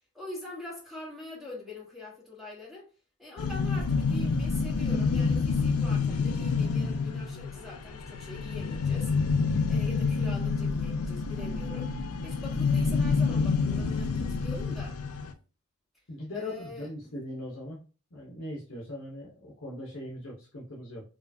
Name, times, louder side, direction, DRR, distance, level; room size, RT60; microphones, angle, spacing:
voice 1, 0.1-2.9 3.2-9.1 9.7-11.9 12.2-15.0 16.3-16.9, left 2 dB, ahead, 1.3 m, -43 dB
sound 1, 3.4-15.3, left 4 dB, 85° left, 0.5 m, -28 dB
voice 2, 16.1-17.8 18.1-21.0, left 1 dB, 60° left, 1.0 m, -40 dB
4.6 x 2.4 x 2.7 m
head